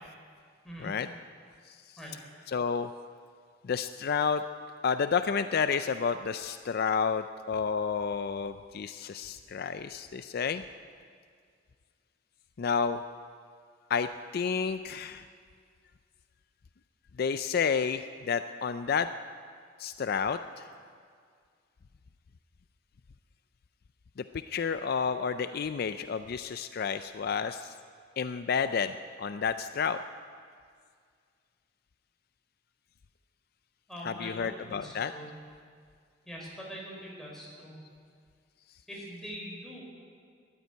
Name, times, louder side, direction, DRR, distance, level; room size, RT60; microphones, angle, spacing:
voice 1, 2.5-2.9 3.6-4.4 4.8-10.6 12.6-13.0 13.9-15.3 17.2-19.1 19.8-20.7 24.5-27.7 28.2-30.0 34.0-35.1, left 6 dB, 55° left, 10 dB, 0.4 m, -30 dB
voice 2, 33.9-35.4 36.3-37.7 38.9-39.8, equal, ahead, -4 dB, 4.6 m, -43 dB
13.5 x 11.5 x 9.2 m, 2.1 s
head